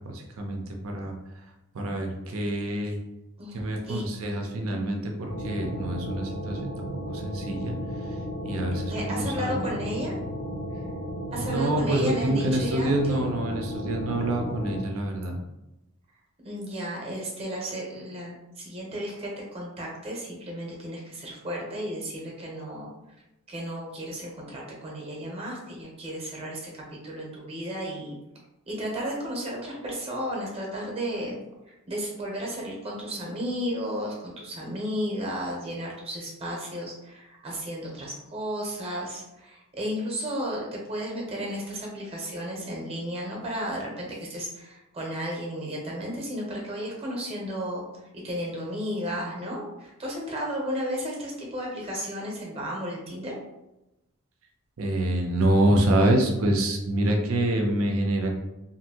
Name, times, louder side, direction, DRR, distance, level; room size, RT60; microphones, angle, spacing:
voice 1, 0.1-1.1 1.7-3.0 3.5-7.7 8.4-9.7 11.5-15.4 54.8-58.3, right 1 dB, 75° right, 2 dB, 0.5 m, -26 dB
sound 1, 5.2-14.8, equal, 85° left, 1.0 m, -34 dB
voice 2, 8.9-10.2 11.3-13.4 16.4-22.9 23.5-28.2 28.7-31.4 31.9-47.8 48.2-53.3, equal, 30° right, -2 dB, 0.8 m, -33 dB
2.7 x 2.6 x 2.8 m, 0.95 s
head